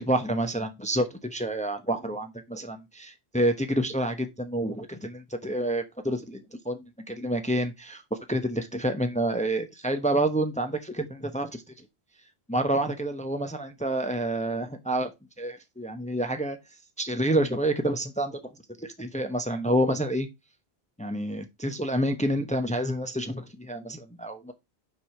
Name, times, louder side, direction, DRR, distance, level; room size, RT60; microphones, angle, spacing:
voice 1, 0.0-11.6 12.5-15.1 15.4-16.6 17.0-18.5 18.8-20.3 21.0-24.5, right 1 dB, 5° left, 0.8 m, -28 dB
6.2 x 4.9 x 4.8 m
omnidirectional pair, 1.1 m